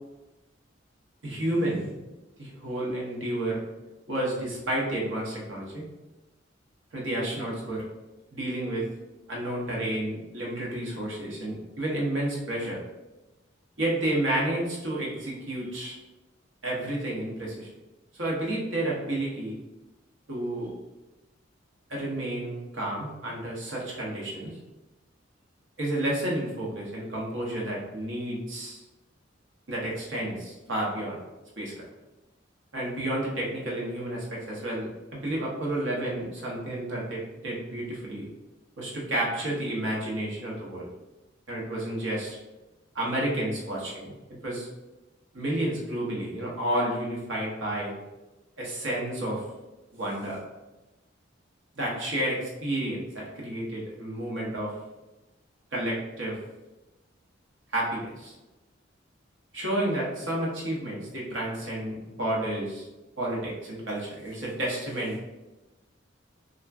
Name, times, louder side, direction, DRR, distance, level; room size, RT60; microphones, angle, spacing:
voice 1, 1.2-1.9 2.4-3.6 4.1-5.8 6.9-7.8 8.3-8.9 9.3-12.8 13.8-16.0 16.6-17.7 18.2-19.6 20.3-20.7 21.9-24.5 25.8-28.8 29.7-31.2 31.6-31.7 32.7-38.3 38.8-40.8 41.5-42.4 42.9-44.1 44.4-44.7 45.3-47.9 48.6-49.4 49.9-50.4 51.7-54.7 55.7-56.4 57.7-58.3 59.5-62.8 63.2-65.3, right 1 dB, 80° right, -4 dB, 0.9 m, -31 dB
2.5 x 2.1 x 3.3 m, 1.0 s
head